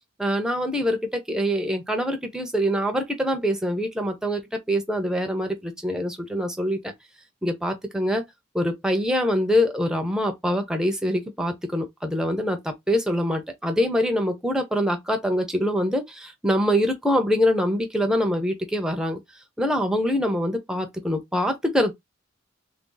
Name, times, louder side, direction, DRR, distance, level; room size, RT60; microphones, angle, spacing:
voice 1, 0.2-6.8 7.4-8.2 8.5-19.2 19.6-21.9, equal, 5° right, 0.6 m, -24 dB
3.3 x 2.6 x 3.8 m
head